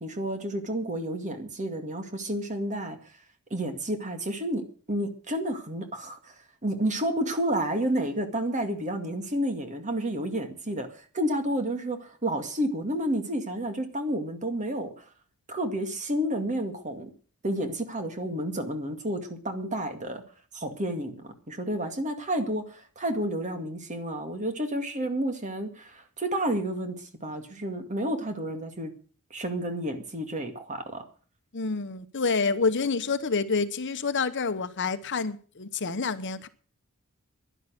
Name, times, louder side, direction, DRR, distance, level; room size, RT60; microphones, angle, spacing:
voice 1, 0.0-3.0 3.5-6.3 6.6-15.0 15.5-17.1 17.4-20.2 20.5-28.9 29.3-31.1, right 1 dB, 35° right, 2.1 m, -30 dB
voice 2, 31.5-36.5, left 4 dB, 55° left, 1.0 m, -28 dB
11.0 x 11.0 x 8.1 m
head